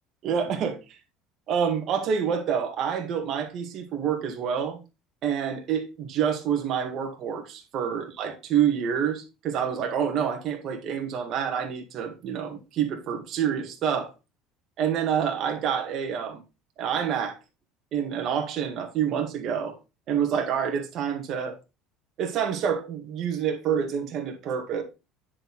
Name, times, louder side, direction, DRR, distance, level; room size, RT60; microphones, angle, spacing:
voice 1, 0.2-0.8 1.5-4.8 5.2-14.1 14.8-16.4 16.8-17.4 17.9-19.7 20.1-21.6 22.2-24.8, right 8 dB, 45° right, 1.9 m, -27 dB
9.7 x 4.5 x 4.0 m
cardioid pair, 145°, 0 cm